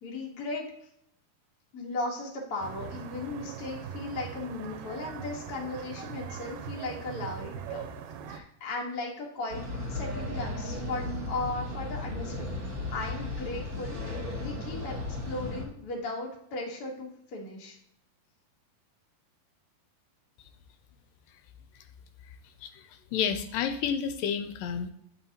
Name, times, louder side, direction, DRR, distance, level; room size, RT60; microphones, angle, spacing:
voice 1, 0.0-0.7 1.7-7.9 8.3-9.6 9.9-17.8, left 2 dB, 65° left, -1 dB, 0.9 m, -37 dB
sound 1, 2.6-8.4, right 7 dB, 80° right, 2.2 m, -41 dB
sound 2, 9.5-15.7, left 2 dB, 40° right, 1.4 m, -35 dB
voice 2, 23.1-24.9, left 7 dB, 80° left, 9 dB, 2.1 m, -30 dB
9.6 x 5.5 x 2.9 m, 0.74 s
omnidirectional pair, 4.1 m